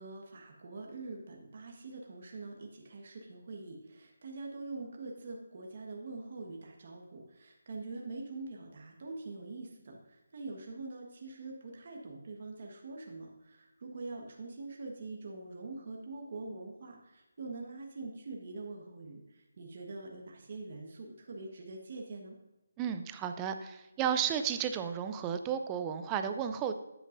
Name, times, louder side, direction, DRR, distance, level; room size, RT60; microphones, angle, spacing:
voice 1, 0.0-22.4, right 3 dB, 45° right, 1 dB, 1.4 m, -44 dB
voice 2, 22.8-26.7, right 8 dB, 15° right, 8 dB, 0.4 m, -33 dB
10.5 x 8.8 x 2.6 m, 0.97 s
figure-of-eight pair, 170°, 0 cm